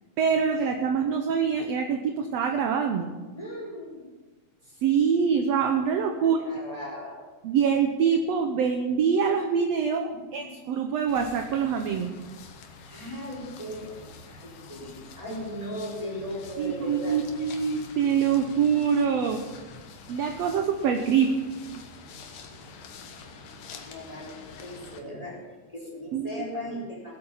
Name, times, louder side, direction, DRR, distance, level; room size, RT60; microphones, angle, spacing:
voice 1, 0.2-3.1 4.8-6.4 7.4-12.1 16.6-19.4 20.1-21.3 26.1-26.3, right 7 dB, 70° right, 5 dB, 1.6 m, -25 dB
voice 2, 3.3-4.1 6.2-7.2 10.4-10.6 12.9-14.0 14.3-17.2 21.2-21.7 23.7-25.4 25.7-27.2, equal, 10° left, -3 dB, 3.7 m, -38 dB
sound 1, 11.1-25.0, left 4 dB, 80° left, 2.9 m, -46 dB
18.5 x 8.4 x 5.6 m, 1.3 s
omnidirectional pair, 3.8 m